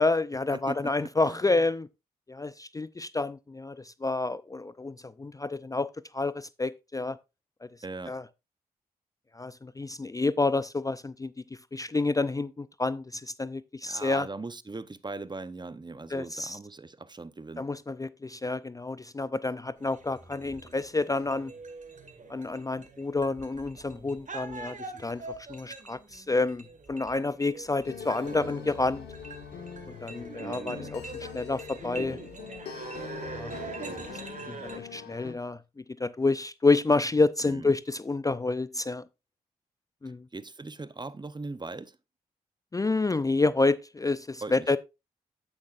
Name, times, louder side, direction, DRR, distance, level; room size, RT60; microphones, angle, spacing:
voice 1, 0.0-1.9 2.3-5.9 6.1-7.2 8.1-8.2 9.3-11.3 11.7-14.3 16.1-16.6 17.6-21.5 22.3-25.2 25.5-29.1 30.0-32.2 33.3-33.5 33.8-33.9 34.5-35.6 36.0-39.0 40.0-40.3 42.7-44.8, left 3 dB, 20° left, 0.4 m, -29 dB
voice 2, 0.5-1.6 7.8-8.2 13.8-17.7 37.4-37.7 40.3-42.0 44.4-44.8, right 3 dB, 25° right, 0.8 m, -40 dB
sound 1, 19.8-34.8, right 4 dB, 50° right, 1.8 m, -43 dB
sound 2, 27.8-35.3, left 7 dB, 75° left, 1.3 m, -42 dB
9.7 x 8.5 x 2.5 m
supercardioid pair, 40°, 17 cm